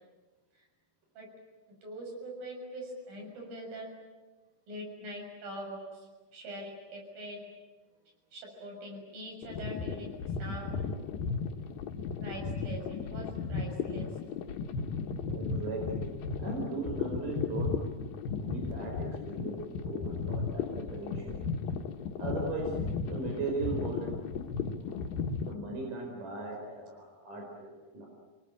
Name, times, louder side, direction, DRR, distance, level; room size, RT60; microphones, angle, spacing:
voice 1, 1.8-3.9 4.7-7.5 8.3-10.1 10.4-10.8 12.2-14.1, right 1 dB, 80° right, 1 dB, 8.5 m, -43 dB
sound 1, 9.4-25.5, left 5 dB, 85° left, 3.2 m, -35 dB
voice 2, 15.3-17.9 18.4-21.4 22.2-24.1 24.7-25.0 25.5-28.1, right 3 dB, 65° right, 1 dB, 6.3 m, -38 dB
27.5 x 21.5 x 9.0 m, 1.2 s
omnidirectional pair, 4.0 m